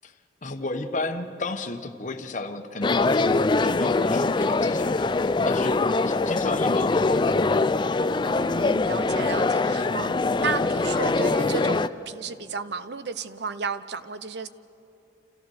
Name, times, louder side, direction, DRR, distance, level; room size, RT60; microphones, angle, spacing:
voice 1, 0.4-7.8 9.8-10.1, left 2 dB, 40° left, 6 dB, 1.1 m, -33 dB
sound 1, 2.8-11.9, left 3 dB, 25° left, 0.4 m, -23 dB
voice 2, 8.3-14.5, right 5 dB, 60° right, 12 dB, 0.7 m, -33 dB
28.5 x 14.5 x 6.4 m, 2.9 s
head